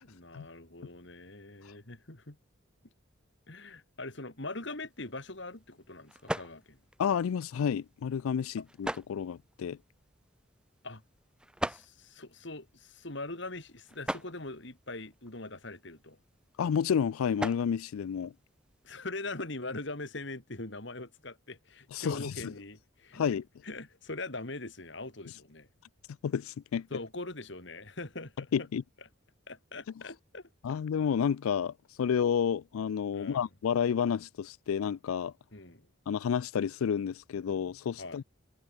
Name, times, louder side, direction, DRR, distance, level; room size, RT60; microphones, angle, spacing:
voice 1, 0.0-2.4 3.5-6.8 8.6-8.7 10.8-11.0 11.6-16.2 18.8-23.2 23.6-25.7 26.9-28.5 29.5-30.8 33.1-33.4 35.5-35.9 38.0-38.2, left 2 dB, 55° left, 2.6 m, -42 dB
sound 1, 4.6-19.0, right 1 dB, 5° right, 1.3 m, -44 dB
voice 2, 7.0-9.8 16.6-18.3 21.9-22.5 23.1-23.4 26.2-26.9 28.5-28.8 30.6-35.3 36.1-38.2, left 7 dB, 85° left, 0.4 m, -30 dB
head